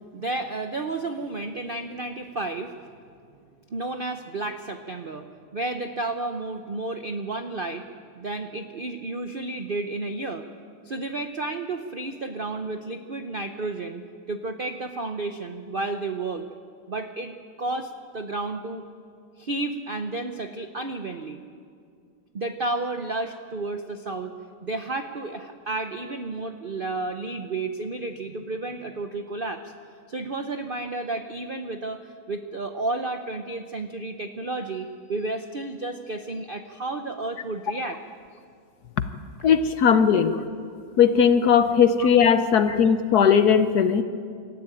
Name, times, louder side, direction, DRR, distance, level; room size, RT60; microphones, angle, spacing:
voice 1, 0.1-2.9 3.7-7.9 8.1-10.5 10.8-16.5 16.9-18.8 19.4-21.4 22.3-24.3 24.6-29.7 30.1-38.0 40.3-40.4 42.0-42.1 42.7-42.8, right 2 dB, 70° right, 7 dB, 0.5 m, -32 dB
voice 2, 39.4-40.4 41.0-44.0, left 7 dB, 60° left, 10 dB, 1.1 m, -18 dB
25.0 x 13.5 x 9.1 m, 2.3 s
omnidirectional pair, 2.2 m